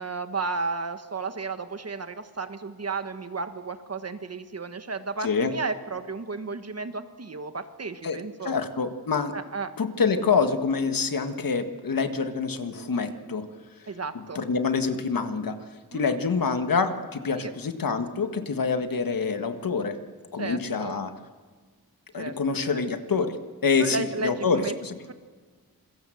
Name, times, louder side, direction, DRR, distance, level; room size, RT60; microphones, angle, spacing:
voice 1, 0.0-8.7 9.3-9.7 13.9-14.4 15.9-16.2 17.3-17.5 20.4-21.0 22.2-22.4 22.7-22.8 23.8-24.7 25.1-25.2, right 4 dB, 40° right, 9 dB, 1.5 m, -33 dB
voice 2, 8.4-9.3 9.8-13.5 14.2-15.6 15.9-20.0 20.3-21.1 22.1-24.9, left 5 dB, 65° left, 8 dB, 1.7 m, -26 dB
27.5 x 22.0 x 7.8 m, 1.5 s
wide cardioid pair, 145°, 37 cm